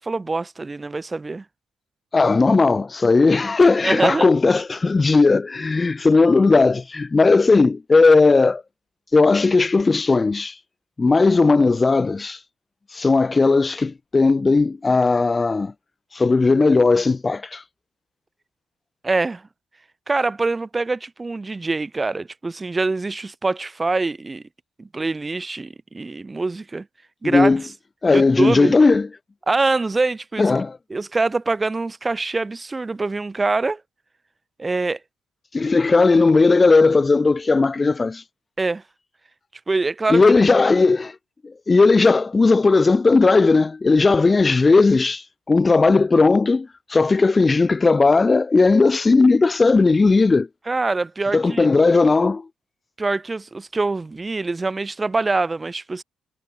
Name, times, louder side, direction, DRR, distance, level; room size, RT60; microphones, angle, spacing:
voice 1, 0.0-1.4 3.8-4.3 19.0-19.4 20.1-24.4 24.8-26.9 27.2-27.5 28.1-28.8 29.5-30.5 30.9-33.8 34.6-35.0 38.6-38.8 39.7-40.4 50.7-51.7 53.0-56.0, right 3 dB, 25° right, 4.8 m, -24 dB
voice 2, 2.1-8.6 9.1-10.6 11.0-12.4 12.9-15.7 16.1-17.6 27.3-27.6 28.0-29.1 30.4-30.8 35.5-38.2 40.1-41.2 41.4-50.5 51.3-52.5, left 3 dB, 25° left, 2.0 m, -17 dB
cardioid pair, 90°, 0 cm